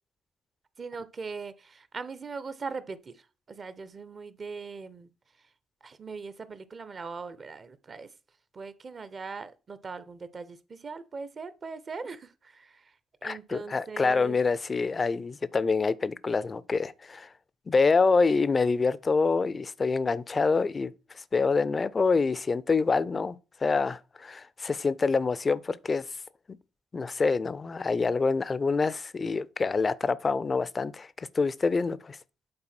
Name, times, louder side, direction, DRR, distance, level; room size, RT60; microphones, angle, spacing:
voice 1, 0.8-5.1 5.8-8.1 8.5-12.9 13.2-14.4, right 4 dB, 40° right, 0.7 m, -40 dB
voice 2, 13.2-17.3 17.7-26.1 26.9-32.2, left 4 dB, 35° left, 0.5 m, -26 dB
8.8 x 3.8 x 4.3 m
figure-of-eight pair, 45°, 0 cm